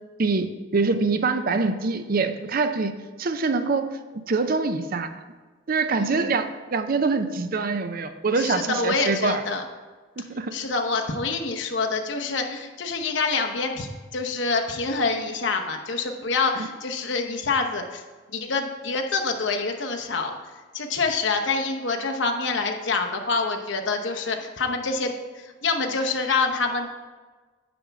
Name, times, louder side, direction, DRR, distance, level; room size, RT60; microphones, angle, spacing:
voice 1, 0.2-2.9 3.2-5.2 5.7-9.4 10.2-10.5, right 4 dB, 45° right, 9 dB, 0.5 m, -25 dB
voice 2, 8.4-9.6 10.5-18.0 18.3-20.4 20.7-25.1 25.6-26.9, left 4 dB, 70° left, 3 dB, 0.9 m, -26 dB
10.0 x 3.5 x 7.0 m, 1.3 s
head